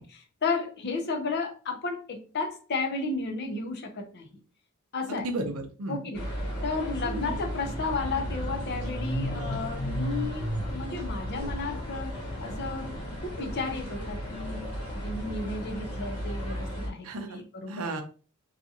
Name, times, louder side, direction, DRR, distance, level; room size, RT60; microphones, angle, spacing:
voice 1, 0.0-4.3 4.9-5.3 5.9-6.3 6.6-12.9 13.2-17.9, left 3 dB, 50° left, 0.5 m, -33 dB
voice 2, 5.1-6.1 7.0-7.4 17.0-17.4 17.7-18.0, right 2 dB, 80° right, 0.6 m, -34 dB
sound 1, 6.1-16.9, equal, 85° left, 0.9 m, -34 dB
2.7 x 2.4 x 2.6 m
head